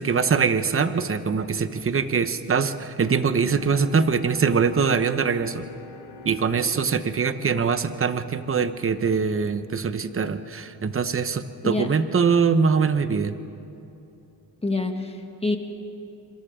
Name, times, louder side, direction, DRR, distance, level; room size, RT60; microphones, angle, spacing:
voice 1, 0.0-5.6 6.2-13.3, right 5 dB, 30° right, 11 dB, 1.0 m, -23 dB
Bowed string instrument, 3.3-8.8, left 4 dB, 65° left, 3.6 m, -45 dB
voice 2, 14.6-15.6, left 2 dB, 15° left, 4 dB, 2.0 m, -26 dB
26.5 x 25.5 x 3.8 m, 2.9 s
cardioid pair, 90°, 43 cm